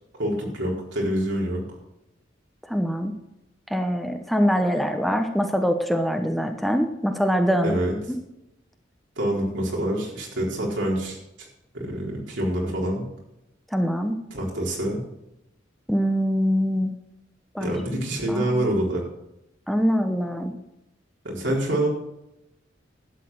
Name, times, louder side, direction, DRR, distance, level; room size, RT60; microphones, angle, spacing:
voice 1, 0.2-1.6 7.6-7.9 9.2-11.5 11.7-13.0 14.3-15.0 17.6-19.0 21.2-21.9, right 1 dB, 75° right, -2 dB, 4.3 m, -26 dB
voice 2, 2.7-3.1 3.7-7.7 13.7-14.2 15.9-16.9 17.5-17.7 18.3-18.6 19.7-20.5, equal, ahead, 5 dB, 0.9 m, -23 dB
12.0 x 8.3 x 6.4 m, 0.88 s
head